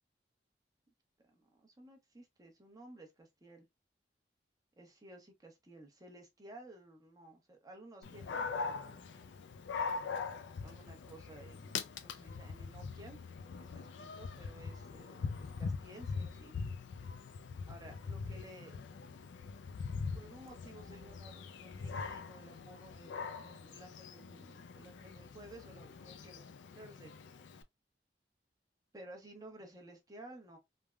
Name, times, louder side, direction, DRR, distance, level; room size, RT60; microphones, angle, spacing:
voice 1, 1.3-3.6 4.8-9.0 10.6-13.2 13.6-16.5 17.6-18.8 20.1-26.5 26.7-27.2 28.9-30.6, right 1 dB, 20° right, 0.8 m, -55 dB
Dog, 8.0-27.6, left 5 dB, 90° left, 0.4 m, -42 dB
3.3 x 2.1 x 2.3 m
head